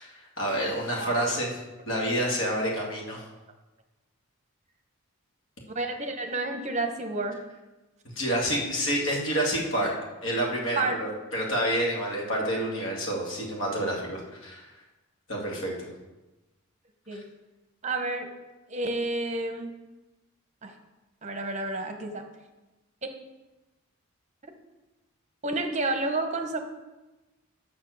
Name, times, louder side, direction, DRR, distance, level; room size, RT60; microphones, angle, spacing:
voice 1, 0.0-1.5 1.9-3.2 8.2-9.9 10.2-14.7 15.3-15.9 17.1-17.2, equal, 60° left, -2 dB, 2.1 m, -28 dB
voice 2, 1.0-1.3 5.7-7.4 10.8-10.9 17.1-17.2 17.8-18.3 18.7-19.7 20.6-20.7 21.2-22.3 25.4-26.6, right 2 dB, 30° right, 5 dB, 0.9 m, -30 dB
7.5 x 6.2 x 6.4 m, 1.1 s
head